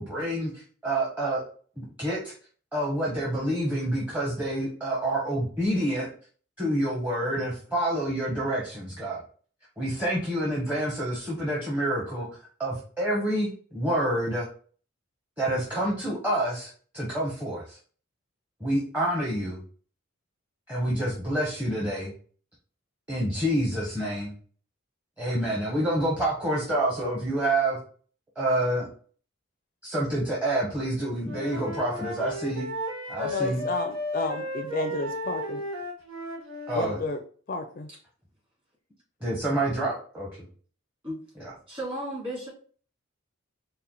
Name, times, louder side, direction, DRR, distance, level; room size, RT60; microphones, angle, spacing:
voice 1, 0.0-1.4 1.8-2.3 2.7-6.1 6.6-9.2 9.8-12.3 12.6-14.5 15.4-17.8 18.6-19.6 20.7-22.1 23.1-24.3 25.2-27.8 28.4-28.9 29.8-32.7 33.1-33.7 36.7-37.0 39.2-40.4 41.4-41.5, right 1 dB, 10° right, -6 dB, 0.8 m, -28 dB
Wind instrument woodwind instrument, 31.2-36.9, left 1 dB, 85° right, 0.9 m, -34 dB
voice 2, 33.2-35.6 36.7-37.2 37.5-37.9, left 2 dB, 40° left, 7 dB, 0.4 m, -32 dB
voice 3, 41.7-42.5, right 1 dB, 25° right, -4 dB, 2.0 m, -33 dB
4.3 x 2.2 x 3.7 m, 0.43 s
head